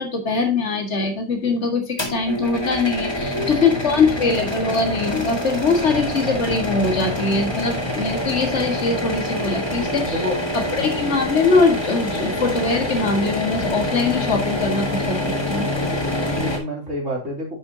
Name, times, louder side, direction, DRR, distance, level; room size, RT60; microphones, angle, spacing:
voice 1, 0.0-10.2 10.5-15.7, left 3 dB, 60° left, 3 dB, 2.1 m, -22 dB
sound 1, 2.0-16.6, left 1 dB, 20° left, 1.6 m, -26 dB
voice 2, 3.1-3.7 9.7-10.4 10.7-10.8 15.7-17.5, left 1 dB, 70° right, -4 dB, 3.4 m, -30 dB
9.9 x 6.8 x 2.8 m, 0.28 s
omnidirectional pair, 1.3 m